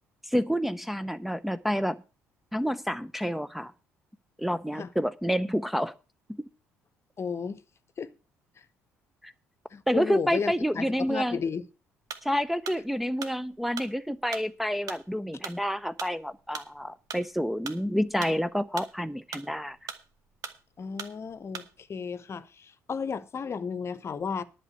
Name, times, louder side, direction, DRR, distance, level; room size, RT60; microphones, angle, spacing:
voice 1, 0.2-2.0 2.5-3.7 4.4-5.9 6.3-6.4 9.2-9.3 9.9-11.4 12.2-19.8, equal, ahead, 0.7 m, -29 dB
voice 2, 7.2-7.6 8.0-8.1 9.7-11.6 20.8-24.4, left 6 dB, 35° left, 0.9 m, -33 dB
sound 1, 12.1-21.9, right 7 dB, 55° right, 1.4 m, -42 dB
11.0 x 5.9 x 8.4 m
figure-of-eight pair, 50°, 7 cm